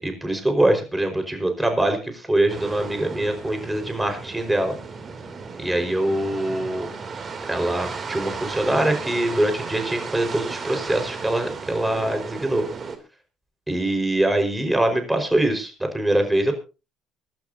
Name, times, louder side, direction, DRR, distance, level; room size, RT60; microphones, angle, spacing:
voice 1, 0.0-4.7 5.6-6.9 7.5-12.7 13.7-16.5, right 1 dB, 10° right, 6 dB, 4.9 m, -23 dB
sound 1, 2.5-13.0, right 4 dB, 40° right, 3.0 m, -34 dB
24.5 x 12.0 x 2.8 m, 0.32 s
hypercardioid pair, 60°, 0 cm